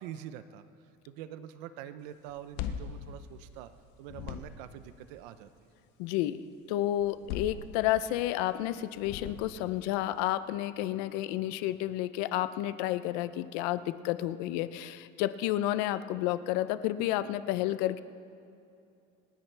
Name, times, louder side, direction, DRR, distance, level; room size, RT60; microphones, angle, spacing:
voice 1, 0.0-3.7 4.0-5.5, right 11 dB, 80° right, 12 dB, 0.6 m, -45 dB
sound 1, 2.3-3.8 4.0-4.8 7.0-8.2 9.0-9.8, left 8 dB, 55° left, 0.9 m, -40 dB
voice 2, 6.0-18.0, left 14 dB, 80° left, 13 dB, 0.6 m, -31 dB
27.5 x 10.5 x 3.4 m, 2.6 s
cardioid pair, 175°, 21 cm